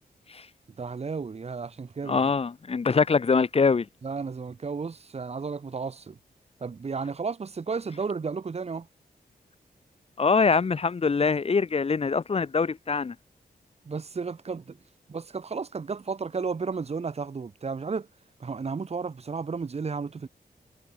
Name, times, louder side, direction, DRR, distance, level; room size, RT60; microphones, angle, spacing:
voice 1, 0.8-2.3 4.0-6.2 6.6-8.9 13.9-14.8 15.1-18.1 18.4-20.3, right 5 dB, 40° right, 2.0 m, -33 dB
voice 2, 2.1-3.9 10.2-13.1, left 5 dB, 35° left, 1.3 m, -23 dB
wide cardioid pair, 170°, 16 cm